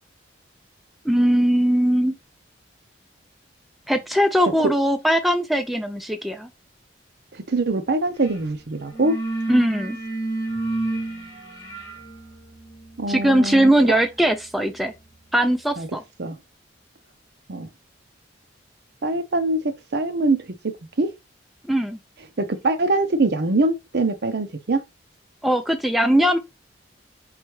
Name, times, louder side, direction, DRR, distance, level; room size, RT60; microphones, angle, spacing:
voice 1, 1.1-2.1 3.9-6.5 9.5-10.0 13.1-14.9 15.3-16.0 21.7-22.0 25.4-26.4, right 1 dB, ahead, 0.3 m, -20 dB
voice 2, 7.3-9.2 13.0-14.0 15.8-15.9 16.2-16.4 17.5-17.7 19.0-19.6 19.9-20.5 21.0-21.1 22.4-24.8, right 2 dB, 55° right, 0.7 m, -23 dB
sound 1, 8.2-8.4 8.7-15.4, right 2 dB, 20° left, 2.0 m, -32 dB
4.4 x 3.2 x 3.1 m
head